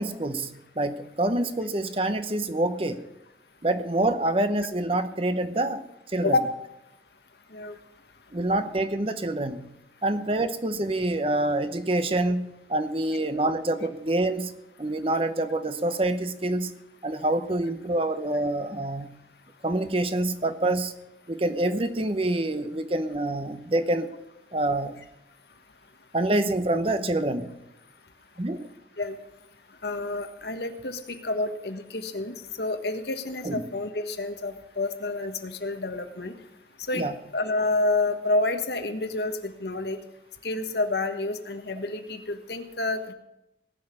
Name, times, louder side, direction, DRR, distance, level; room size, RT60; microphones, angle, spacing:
voice 1, 0.0-3.0 3.6-5.8 6.1-6.4 8.3-9.7 10.0-14.5 14.8-16.7 17.0-19.2 19.6-20.9 21.3-24.1 24.5-25.0 26.1-27.5 28.4-28.7 33.4-33.6 36.9-37.1, right 1 dB, 30° right, 10 dB, 0.9 m, -26 dB
voice 2, 29.8-36.3 36.9-37.1 37.3-40.0 40.4-43.1, left 2 dB, 70° left, 7 dB, 1.4 m, -29 dB
18.0 x 6.5 x 9.9 m, 0.88 s
head